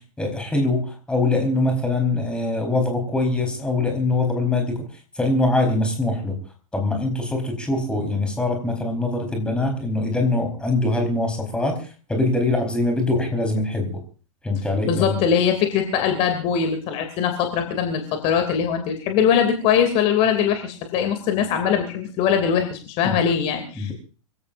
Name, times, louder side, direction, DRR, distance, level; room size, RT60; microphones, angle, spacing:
voice 1, 0.0-6.4 6.7-14.0 14.4-15.2 23.0-23.2 23.7-23.9, left 2 dB, 5° left, 4 dB, 4.4 m, -23 dB
voice 2, 14.9-23.9, left 8 dB, 35° left, 6 dB, 2.9 m, -21 dB
25.5 x 16.5 x 2.7 m, 0.37 s
figure-of-eight pair, 105°, 18 cm